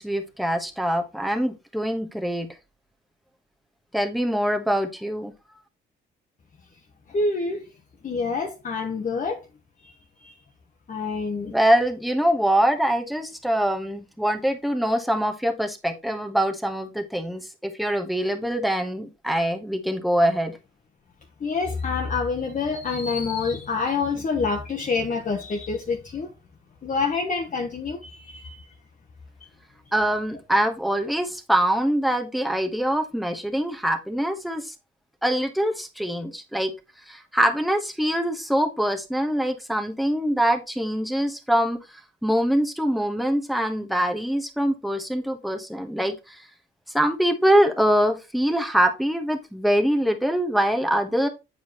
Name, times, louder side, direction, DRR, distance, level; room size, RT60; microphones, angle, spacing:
voice 1, 0.0-2.5 3.9-5.3 11.5-20.6 29.9-34.7 35.2-36.7 37.1-41.8 42.2-46.4 46.9-51.3, equal, ahead, 1.2 m, -24 dB
voice 2, 7.1-7.6 8.0-9.4 9.8-9.9 10.2-10.3 10.9-11.5 21.4-26.3 26.8-28.6, left 4 dB, 40° left, 1.1 m, -27 dB
8.0 x 4.7 x 3.1 m
cardioid pair, 90°, 20 cm